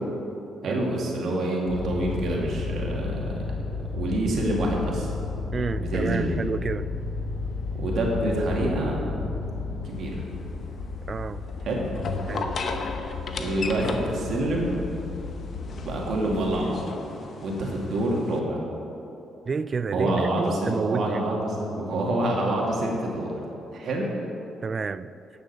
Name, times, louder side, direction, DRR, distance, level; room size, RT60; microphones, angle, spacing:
voice 1, 0.6-3.3 3.9-5.1 5.8-6.4 7.7-9.0 9.8-10.2 11.6-11.8 13.4-14.8 15.7-16.8 17.4-18.6 19.9-23.4 23.7-24.0, right 1 dB, 65° right, 2.3 m, -27 dB
sound 1, 1.7-16.6, left 4 dB, 80° left, 1.3 m, -33 dB
voice 2, 5.5-6.9 11.1-11.4 12.3-12.5 19.5-21.3 24.6-25.1, right 5 dB, 35° right, 0.3 m, -29 dB
sound 2, 9.8-18.4, left 3 dB, 55° left, 0.9 m, -36 dB
10.0 x 6.9 x 6.9 m
cardioid pair, 90°, 0 cm